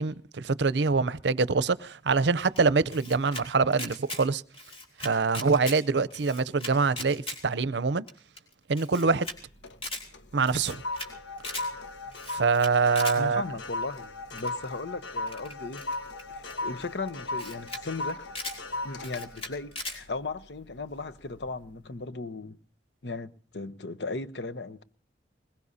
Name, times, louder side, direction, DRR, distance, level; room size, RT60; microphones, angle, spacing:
voice 1, 0.0-4.4 5.0-8.0 8.7-9.3 10.3-10.8 12.3-13.4, right 4 dB, 75° right, 0.6 m, -25 dB
Camera, 2.6-3.4 3.7-4.2 4.5-5.8 6.1-7.4 7.7-7.8 8.1-8.2 8.4-8.5 8.8-9.4 9.7-10.0 10.4-11.1 11.4-11.7 12.1-13.2 14.4-14.6 15.3-16.5 17.1-17.2 17.3-17.8 18.1-18.6 19.0-20.0, left 2 dB, 35° left, 3.5 m, -38 dB
sound 1, 9.3-9.8 10.1-20.7 21.1-21.4, left 2 dB, 90° left, 1.3 m, -37 dB
voice 2, 13.2-15.8 16.3-18.2 18.8-22.6 23.0-24.8, left 3 dB, 70° left, 0.9 m, -37 dB
21.5 x 21.0 x 2.7 m
head